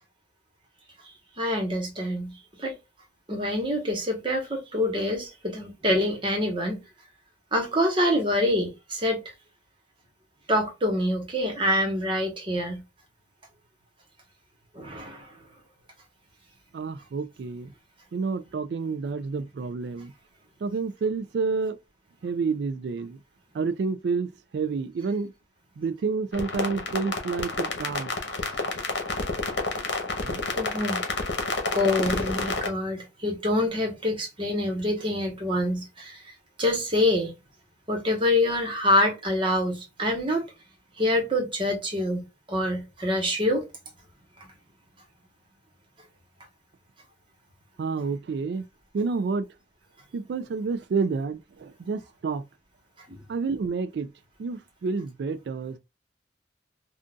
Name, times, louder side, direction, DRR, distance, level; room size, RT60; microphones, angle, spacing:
voice 1, 1.4-2.3 2.6-2.7 3.3-6.8 7.5-9.2 10.5-12.8 14.7-15.3 30.5-31.0 31.7-36.2 36.6-37.3 37.9-40.4 41.0-43.6 53.1-53.2, left 1 dB, 30° right, 1.2 m, -26 dB
voice 2, 16.7-17.7 18.1-20.1 20.6-21.8 22.2-23.2 23.5-25.3 25.8-28.1 30.3-30.4 47.8-48.7 48.9-49.5 50.1-52.4 53.3-54.1 54.4-55.8, right 4 dB, 65° right, 0.3 m, -29 dB
sound 1, 26.3-32.7, left 3 dB, 75° left, 0.9 m, -29 dB
3.8 x 2.4 x 2.3 m
head